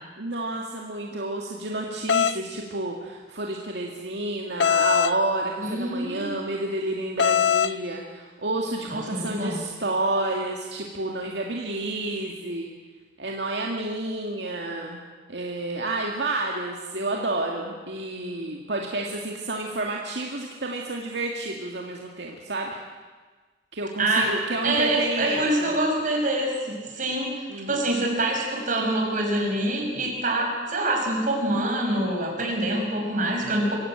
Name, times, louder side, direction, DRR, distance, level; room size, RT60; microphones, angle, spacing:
voice 1, 0.2-12.7 13.2-15.0 15.3-22.8 23.7-25.7 27.5-27.8, right 2 dB, 75° right, 0 dB, 2.2 m, -30 dB
sound 1, 2.1-2.4 4.6-5.2 7.2-7.7, left 7 dB, 80° left, 0.6 m, -21 dB
voice 2, 5.6-6.4 8.9-9.6 24.0-24.3 24.6-33.7, right 1 dB, 50° right, 1 dB, 6.2 m, -25 dB
24.5 x 16.0 x 9.1 m, 1.4 s
head